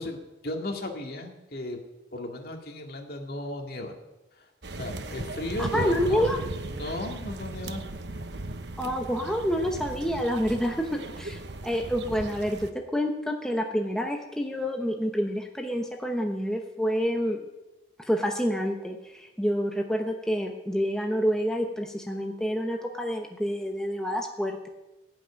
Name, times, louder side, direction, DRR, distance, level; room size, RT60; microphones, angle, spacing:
voice 1, 0.0-1.8 2.1-3.9 4.4-4.5 4.7-6.3 6.7-7.8, left 1 dB, 55° left, 2 dB, 2.1 m, -35 dB
sound 1, 4.6-12.7, right 2 dB, 70° right, 1.0 m, -37 dB
voice 2, 5.6-6.4 8.8-17.4 18.0-24.7, equal, 5° left, 2 dB, 0.9 m, -28 dB
17.0 x 6.1 x 8.7 m, 1.0 s
head